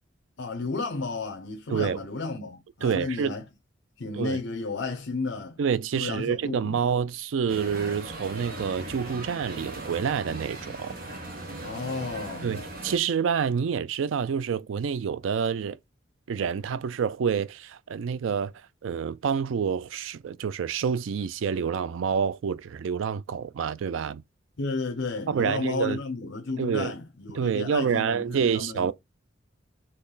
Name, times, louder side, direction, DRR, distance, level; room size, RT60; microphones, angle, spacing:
voice 1, 0.4-3.4 4.0-5.6 5.9-6.8 11.6-12.6 24.6-28.9, left 3 dB, 70° left, 0.7 m, -32 dB
voice 2, 2.8-3.4 4.1-4.4 5.6-10.9 12.4-15.8 16.3-18.5 18.8-24.2 25.3-26.0 26.6-26.9 27.3-28.9, right 6 dB, 80° right, 0.4 m, -28 dB
sound 1, 7.5-13.0, right 2 dB, 50° right, 1.1 m, -39 dB
4.4 x 3.0 x 3.8 m
head